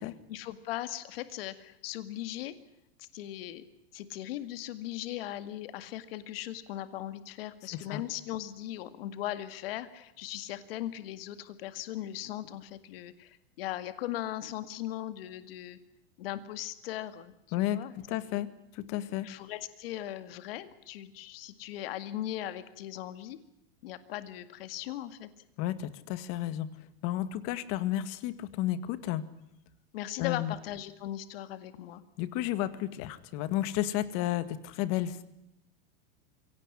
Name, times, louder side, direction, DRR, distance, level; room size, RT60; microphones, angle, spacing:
voice 1, 0.0-2.5 3.0-3.6 3.9-15.8 16.2-18.0 18.3-18.4 19.2-23.4 23.8-25.3 29.9-32.0, left 13 dB, 65° left, 12 dB, 2.1 m, -39 dB
voice 2, 18.1-18.5 18.7-19.3 25.6-26.7 27.0-29.3 30.2-30.5 32.2-35.2, left 13 dB, 45° left, 13 dB, 1.9 m, -32 dB
24.0 x 17.5 x 9.9 m, 0.83 s
supercardioid pair, 150°, 31 cm